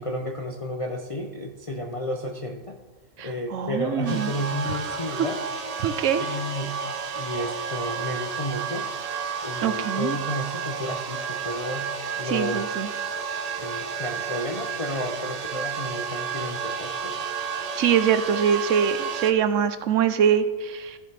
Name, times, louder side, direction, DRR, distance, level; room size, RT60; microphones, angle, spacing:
voice 1, 0.0-2.8 3.2-5.4 6.2-6.7 7.1-8.9 9.4-11.9 12.2-12.7 13.6-17.3, left 1 dB, 40° left, 2 dB, 0.5 m, -32 dB
voice 2, 3.2-4.3 4.7-4.8 5.8-6.2 9.6-10.2 12.2-12.9 17.8-21.0, right 8 dB, 75° right, 10 dB, 1.0 m, -23 dB
sound 1, 4.1-19.3, right 6 dB, 40° right, 0.6 m, -31 dB
14.0 x 7.3 x 3.4 m, 1.4 s
omnidirectional pair, 1.4 m